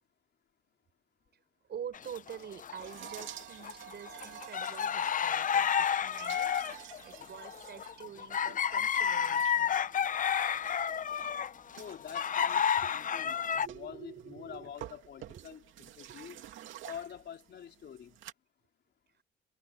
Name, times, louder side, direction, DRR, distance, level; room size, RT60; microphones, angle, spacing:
voice 1, 1.3-9.8 12.8-12.9 13.5-14.7 15.3-15.4 16.1-16.5 19.1-19.2, right 8 dB, 60° right, 5.5 m, -47 dB
sound 1, 1.9-3.3 3.6-13.7, left 8 dB, 40° left, 0.6 m, -31 dB
sound 2, 2.8-18.3, right 12 dB, 80° right, 2.5 m, -51 dB
voice 2, 11.7-13.4 13.7-15.6 15.9-16.4 16.8-18.2, left 8 dB, 60° left, 3.4 m, -46 dB
cardioid pair, 90°, 20 cm